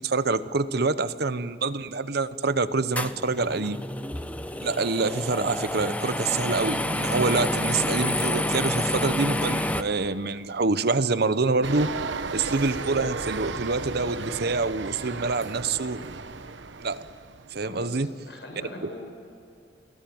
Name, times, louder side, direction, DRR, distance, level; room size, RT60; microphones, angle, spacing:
voice 1, 0.0-3.8 4.6-11.9 12.3-16.0 16.8-17.0 17.5-18.1 18.8-18.9, right 3 dB, 60° right, 13 dB, 0.9 m, -26 dB
sound 1, 3.0-9.8, left 1 dB, 10° left, 0.9 m, -28 dB
sound 2, 11.6-17.9, right 4 dB, 85° right, 1.1 m, -35 dB
voice 2, 17.6-19.0, left 1 dB, 80° left, 2 dB, 6.9 m, -41 dB
29.5 x 19.0 x 9.4 m, 2.4 s
head